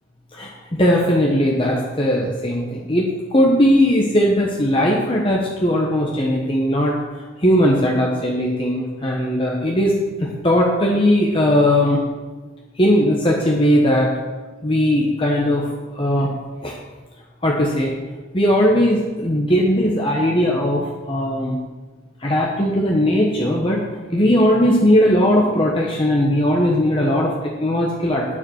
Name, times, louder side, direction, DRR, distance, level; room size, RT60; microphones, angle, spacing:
voice 1, 0.3-3.1 3.3-6.9 7.4-12.0 12.8-14.1 14.6-15.6 15.9-16.3 16.6-16.7 17.4-17.9 18.3-21.6 22.2-23.9 24.1-28.4, equal, 25° left, -2 dB, 1.2 m, -18 dB
9.7 x 7.3 x 6.4 m, 1.3 s
head